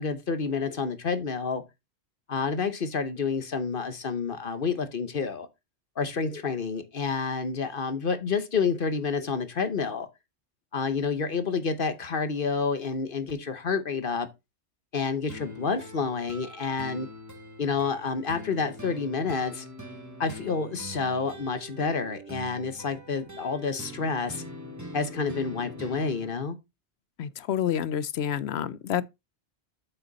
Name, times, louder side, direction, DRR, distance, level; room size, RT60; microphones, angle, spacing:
voice 1, 0.0-1.6 2.3-5.5 6.0-10.1 10.7-14.3 14.9-17.1 17.6-19.6 20.2-24.4 24.9-26.6, left 5 dB, 50° left, 1.1 m, -29 dB
sound 1, 15.3-26.3, equal, 15° right, 1.2 m, -43 dB
voice 2, 27.2-29.0, left 9 dB, 70° left, 0.8 m, -28 dB
8.2 x 5.7 x 4.0 m
omnidirectional pair, 1.2 m